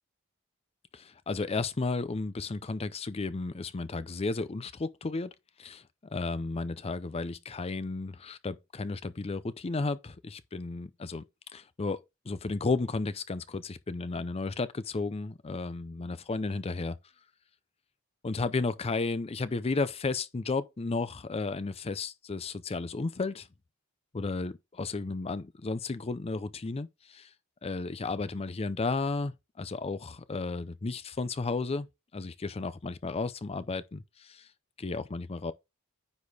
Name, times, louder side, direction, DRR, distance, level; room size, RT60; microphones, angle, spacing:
voice 1, 0.9-5.3 5.6-5.8 6.1-11.2 11.5-17.0 18.2-23.5 24.1-27.3 27.6-31.9 32.1-34.5 34.8-35.5, left 3 dB, 30° left, 0.5 m, -33 dB
9.6 x 4.2 x 3.4 m
head